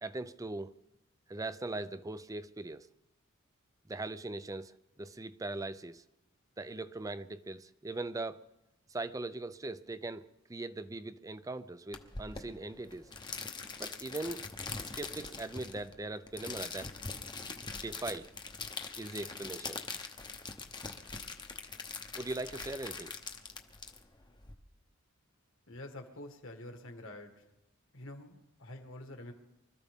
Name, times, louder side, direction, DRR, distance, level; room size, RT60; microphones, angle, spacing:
voice 1, 0.0-0.8 1.3-2.9 3.9-6.0 6.6-8.4 8.9-13.1 13.8-14.4 14.8-16.9 17.8-18.3 19.0-19.8 22.2-23.1, right 2 dB, 15° right, 0.4 m, -40 dB
sound 1, 11.9-24.5, left 4 dB, 20° left, 0.9 m, -43 dB
voice 2, 25.7-27.4 27.9-29.3, left 1 dB, 60° left, 1.7 m, -47 dB
24.5 x 13.5 x 3.6 m
head